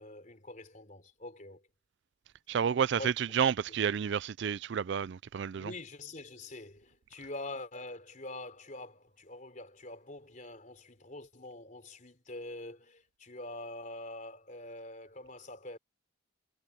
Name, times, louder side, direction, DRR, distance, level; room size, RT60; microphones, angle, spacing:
voice 1, 0.0-1.6 3.0-3.1 5.6-15.8, left 2 dB, 40° left, 3.8 m, -45 dB
voice 2, 2.5-5.7, right 7 dB, 60° right, 0.4 m, -30 dB
head